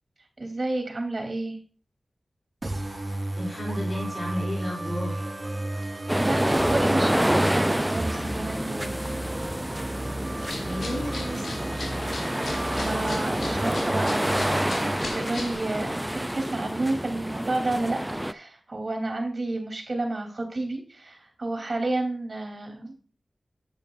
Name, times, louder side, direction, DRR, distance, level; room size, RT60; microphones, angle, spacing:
voice 1, 0.4-1.6 6.2-9.0 12.5-23.0, right 2 dB, 55° right, 4 dB, 3.4 m, -31 dB
sound 1, 2.6-15.0, right 1 dB, 35° right, 3.9 m, -33 dB
voice 2, 3.3-5.3 10.6-11.5, equal, 40° left, -3 dB, 3.4 m, -33 dB
sound 2, 6.1-18.3, equal, 10° right, 0.5 m, -28 dB
sound 3, 10.4-15.5, left 2 dB, 75° left, 2.8 m, -38 dB
9.3 x 8.6 x 2.6 m, 0.40 s
cardioid pair, 45°, 0 cm